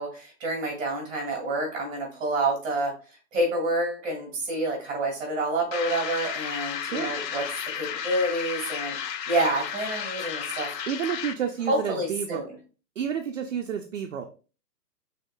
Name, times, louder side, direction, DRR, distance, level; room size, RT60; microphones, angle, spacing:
voice 1, 0.0-2.9 3.3-7.4 7.7-9.0 9.3-10.7 11.7-12.5, right 2 dB, 10° right, -1 dB, 1.7 m, -28 dB
sound 1, 5.7-11.5, left 8 dB, 90° left, 0.7 m, -33 dB
voice 2, 10.9-12.4 13.0-14.3, right 8 dB, 55° right, 3 dB, 0.5 m, -30 dB
5.5 x 3.5 x 2.2 m, 0.36 s
hypercardioid pair, 175°, 48 cm